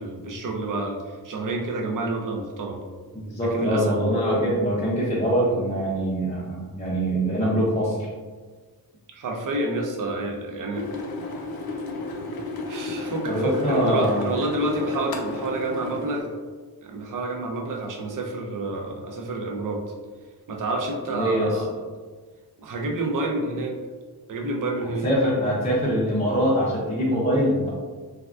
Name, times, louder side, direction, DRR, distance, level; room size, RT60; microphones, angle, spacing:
voice 1, 0.0-2.8 3.5-4.0 9.1-10.9 12.7-16.3 16.8-19.8 20.5-21.8 22.6-23.8 24.3-25.1, right 2 dB, 55° right, 0 dB, 0.5 m, -29 dB
voice 2, 3.2-8.0 13.3-14.2 15.0-15.1 21.1-21.6 25.0-27.7, equal, 20° left, -7 dB, 0.4 m, -23 dB
sound 1, 10.7-16.2, left 3 dB, 70° left, 0.5 m, -32 dB
3.4 x 2.3 x 2.3 m, 1.4 s
wide cardioid pair, 170°, 37 cm